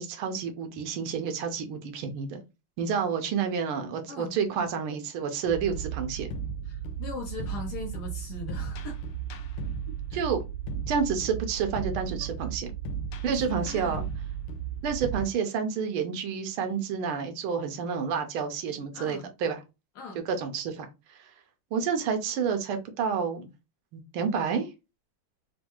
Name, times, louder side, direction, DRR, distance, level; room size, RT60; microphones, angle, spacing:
voice 1, 0.0-2.4 2.8-6.3 9.9-10.4 10.9-12.7 13.2-14.0 14.8-19.6 20.3-21.2 21.7-23.5 23.9-24.7, right 6 dB, 80° right, 1.5 m, -29 dB
sound 1, 5.5-15.2, right 7 dB, 80° left, 1.4 m, -35 dB
voice 2, 6.6-9.0 10.1-10.2 13.3-14.0 18.9-19.3 19.9-20.2, left 3 dB, 60° left, 1.2 m, -40 dB
4.3 x 2.3 x 2.9 m
omnidirectional pair, 2.4 m